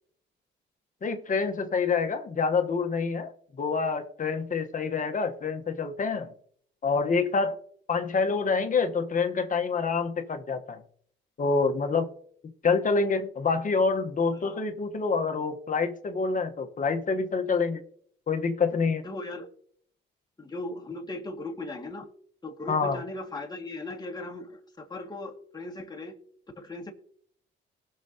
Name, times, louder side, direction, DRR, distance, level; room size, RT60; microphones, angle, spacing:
voice 1, 1.0-3.3 3.6-6.3 6.8-7.6 7.9-10.8 11.4-12.1 12.6-17.8 18.3-19.0 22.7-23.0, left 4 dB, 40° left, 1.3 m, -27 dB
voice 2, 19.0-19.5 20.4-22.1 22.4-26.2 26.6-26.9, left 2 dB, 20° left, 2.2 m, -38 dB
19.5 x 6.7 x 2.9 m
cardioid pair, 90°, 20 cm